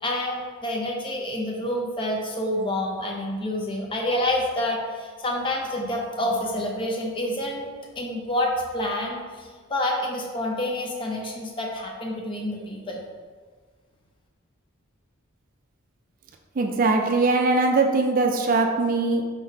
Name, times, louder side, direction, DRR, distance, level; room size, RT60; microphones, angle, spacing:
voice 1, 0.0-7.7 8.0-13.0, left 1 dB, 25° left, 0 dB, 0.5 m, -28 dB
voice 2, 16.6-19.2, right 3 dB, 40° right, 3 dB, 0.3 m, -21 dB
4.7 x 3.7 x 2.7 m, 1.5 s
head